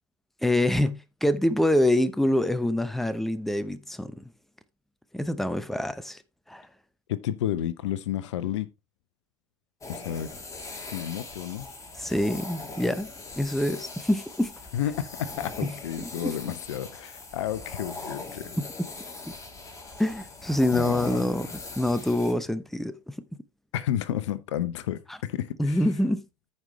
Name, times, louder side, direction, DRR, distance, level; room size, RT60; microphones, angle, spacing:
voice 1, 0.4-4.2 5.1-6.2 6.5-6.7 12.0-13.1 13.4-14.5 15.6-15.7 16.0-16.3 18.6-18.7 20.0-23.1 25.1-25.2 25.6-26.2, left 1 dB, ahead, 0.8 m, -26 dB
voice 2, 7.1-8.7 9.9-10.3 10.9-11.7 14.7-18.5 20.7-21.3 23.7-25.8, left 11 dB, 65° left, 0.8 m, -31 dB
sound 1, 9.8-22.3, left 3 dB, 20° left, 2.8 m, -41 dB
14.0 x 5.4 x 3.1 m
figure-of-eight pair, 75°, 16 cm